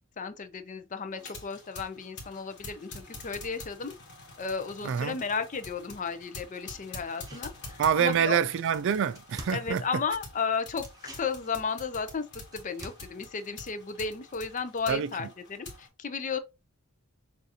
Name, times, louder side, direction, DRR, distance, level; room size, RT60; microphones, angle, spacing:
voice 1, 0.2-3.9 4.4-8.4 9.5-16.4, left 5 dB, 35° left, 0.5 m, -34 dB
sound 1, 1.1-15.9, left 3 dB, 50° left, 1.6 m, -47 dB
voice 2, 4.8-5.2 7.8-9.8 14.9-15.1, right 7 dB, 55° right, 0.3 m, -26 dB
sound 2, 7.0-8.2 8.5-8.6 8.8-10.3 10.8-14.5 14.8-14.9, right 2 dB, 15° right, 0.8 m, -49 dB
6.6 x 2.5 x 2.8 m
head